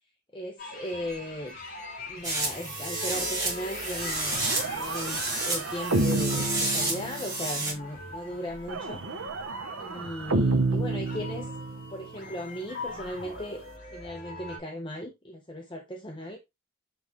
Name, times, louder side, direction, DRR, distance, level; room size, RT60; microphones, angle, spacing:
voice 1, 0.3-1.6 2.0-9.0 9.8-11.5 11.9-13.6 13.9-16.4, left 1 dB, 20° left, 0.9 m, -37 dB
sound 1, 0.6-14.6, left 2 dB, 45° left, 5.3 m, -42 dB
sound 2, 2.2-7.7, right 2 dB, 15° right, 3.0 m, -31 dB
sound 3, 4.3-7.6 8.7-11.9, right 2 dB, 70° right, 1.0 m, -30 dB
8.6 x 4.1 x 3.5 m
head